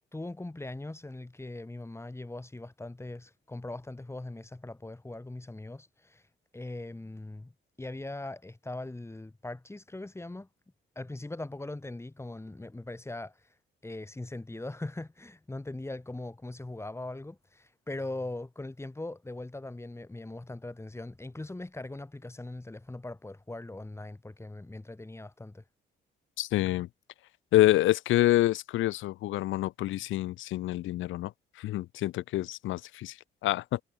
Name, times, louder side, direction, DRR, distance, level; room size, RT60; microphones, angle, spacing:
voice 1, 0.1-6.2 6.5-7.5 7.8-10.5 10.9-13.4 13.8-25.6, left 2 dB, 15° left, 3.4 m, -40 dB
voice 2, 26.4-26.9 27.5-31.3 31.6-33.1 33.4-33.8, left 15 dB, 80° left, 0.7 m, -27 dB
cardioid pair, 90°, 20 cm